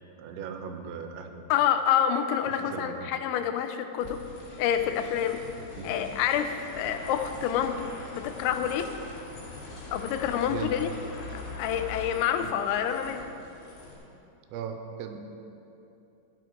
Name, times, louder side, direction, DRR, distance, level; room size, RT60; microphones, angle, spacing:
voice 1, 0.2-1.4 2.5-3.1 5.8-5.9 10.5-10.7 12.4-12.5 14.5-15.2, right 7 dB, 85° right, 6 dB, 3.0 m, -38 dB
voice 2, 1.5-4.2 4.6-5.4 5.8-8.9 9.9-10.9 11.3-13.3, left 9 dB, 85° left, 8 dB, 2.9 m, -28 dB
sound 1, 4.0-14.0, left 2 dB, 70° left, 4.6 m, -42 dB
14.5 x 10.0 x 4.6 m, 2.9 s
omnidirectional pair, 5.3 m